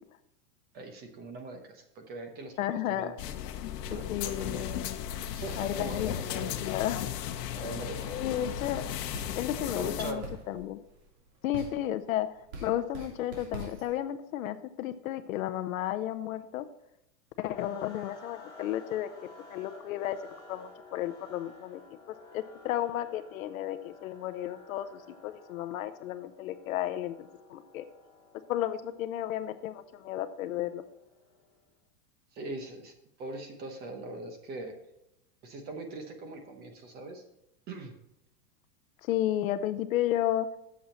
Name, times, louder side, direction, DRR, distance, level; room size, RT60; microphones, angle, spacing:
voice 1, 0.7-2.6 2.9-3.1 3.9-4.8 5.3-6.7 7.5-8.4 9.7-10.2 32.3-32.9 33.2-34.7 35.4-37.2 37.7-37.9, right 2 dB, 20° right, 5 dB, 0.8 m, -41 dB
voice 2, 2.6-3.2 3.9-5.0 5.5-7.1 8.0-8.8 9.4-10.8 11.4-16.7 17.4-19.1 19.5-20.2 20.5-21.8 22.3-27.8 28.5-30.8 39.0-40.5, left 12 dB, 60° left, 12 dB, 0.7 m, -33 dB
sound 1, 3.2-10.1, left 10 dB, 80° left, 1.0 m, -36 dB
sound 2, 9.1-14.0, right 2 dB, 60° right, 3.0 m, -46 dB
sound 3, 17.5-31.6, left 2 dB, 10° left, 2.9 m, -54 dB
8.6 x 7.3 x 4.2 m, 0.84 s
supercardioid pair, 160°, 48 cm